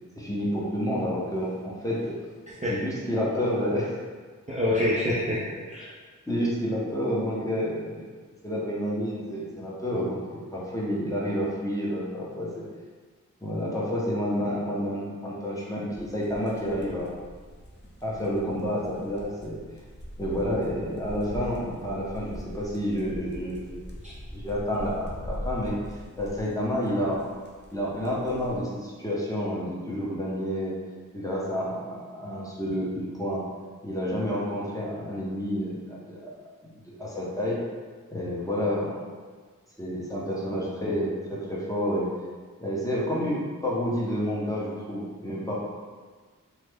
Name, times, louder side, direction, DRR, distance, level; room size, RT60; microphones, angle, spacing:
voice 1, 0.2-2.0 2.7-4.0 6.3-8.0 8.4-12.6 13.4-17.1 18.0-19.6 20.2-23.8 24.3-25.7 26.2-27.2 27.7-30.7 31.1-33.4 33.8-36.3 36.7-37.6 38.1-39.0 39.8-42.1 42.6-45.5, equal, 10° left, -6 dB, 0.9 m, -29 dB
voice 2, 4.5-5.9 24.0-24.1, left 1 dB, 20° right, -7 dB, 0.5 m, -26 dB
sound 1, 15.9-28.6, equal, 35° left, 0.7 m, -42 dB
3.1 x 2.1 x 3.4 m, 1.5 s
wide cardioid pair, 55°, 32 cm